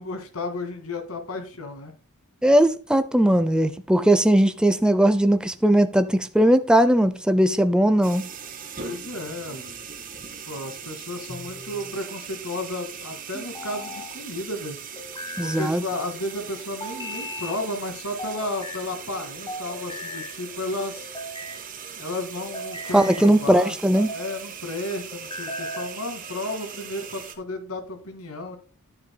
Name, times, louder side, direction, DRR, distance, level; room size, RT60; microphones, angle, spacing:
voice 1, 0.0-1.9 8.8-9.8 10.3-14.8 15.4-21.1 22.0-23.7 24.1-28.6, left 2 dB, 75° left, 2.1 m, -33 dB
voice 2, 2.4-8.3 15.4-15.8 22.9-24.1, right 1 dB, 5° right, 0.5 m, -19 dB
sound 1, 8.0-27.4, right 7 dB, 40° right, 1.7 m, -40 dB
sound 2, 11.3-12.0 13.3-14.1 15.0-15.8 16.8-17.6 18.2-18.9 19.5-20.3 21.0-21.6 22.3-23.3 23.8-24.4 25.1-25.9, left 1 dB, 25° left, 2.1 m, -37 dB
10.5 x 9.1 x 2.2 m
head